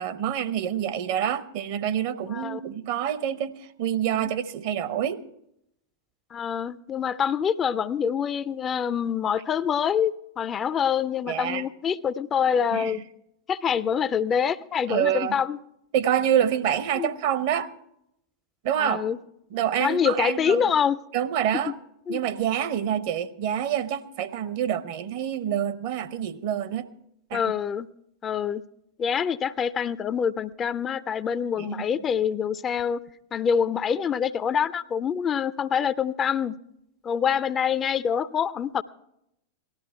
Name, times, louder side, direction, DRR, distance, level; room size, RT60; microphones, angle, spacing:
voice 1, 0.0-5.2 11.3-11.7 12.7-13.0 14.9-15.4 15.9-17.7 18.6-19.0 19.5-20.7 21.1-21.7 22.1-26.9 27.3-27.5 31.6-31.8, right 10 dB, 50° right, 0.8 m, -27 dB
voice 2, 6.3-13.0 13.5-15.6 17.0-17.1 18.8-19.2 19.8-21.0 21.7-21.8 22.1-22.2 27.3-27.9 28.2-28.6 29.0-33.0 33.3-36.5 37.0-38.8, left 7 dB, 25° left, 0.5 m, -25 dB
18.0 x 13.0 x 4.4 m
figure-of-eight pair, 90°, 0 cm